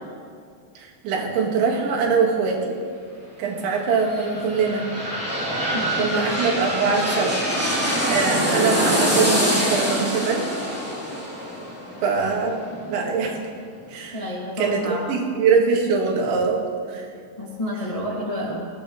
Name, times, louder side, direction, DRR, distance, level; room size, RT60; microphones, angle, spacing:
voice 1, 0.8-2.8 3.4-4.9 6.0-7.4 8.1-10.5 12.0-13.4 13.9-14.2 14.6-16.6 16.9-17.1, right 5 dB, 85° right, 0 dB, 4.2 m, -23 dB
sound 1, 3.7-13.4 13.8-13.9, equal, 5° right, 2.2 m, -25 dB
voice 2, 5.7-6.2 14.1-15.2 17.4-18.7, equal, 35° left, -4 dB, 0.5 m, -30 dB
22.0 x 17.0 x 3.2 m, 2.3 s
omnidirectional pair, 5.2 m